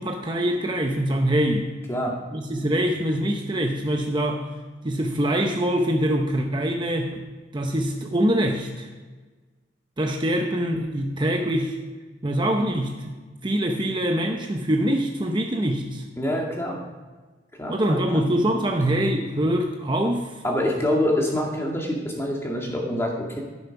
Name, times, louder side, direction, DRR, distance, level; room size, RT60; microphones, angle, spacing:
voice 1, 0.0-1.7 2.3-4.5 4.8-7.2 7.5-8.9 10.0-11.8 12.2-13.1 13.4-16.0 17.7-20.4, right 1 dB, 25° right, 2 dB, 0.8 m, -24 dB
voice 2, 16.2-16.8 17.6-18.2 20.4-23.4, left 1 dB, 15° left, -1 dB, 2.0 m, -26 dB
13.5 x 7.0 x 5.8 m, 1.3 s
head